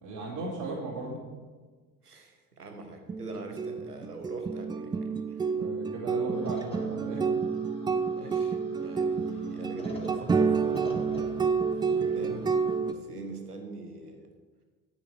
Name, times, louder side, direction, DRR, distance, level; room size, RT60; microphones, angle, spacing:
voice 1, 0.0-1.2 5.5-7.2, right 2 dB, 50° right, -7 dB, 2.9 m, -36 dB
voice 2, 2.0-5.5 8.1-11.2 11.9-12.5 12.8-14.3, right 2 dB, 90° right, 5 dB, 1.2 m, -43 dB
sound 1, 3.1-12.9, right 5 dB, 10° right, 0.4 m, -29 dB
sound 2, 6.3-12.8, left 1 dB, 15° left, 2.0 m, -48 dB
9.6 x 9.2 x 4.8 m, 1.4 s
figure-of-eight pair, 60°, 45 cm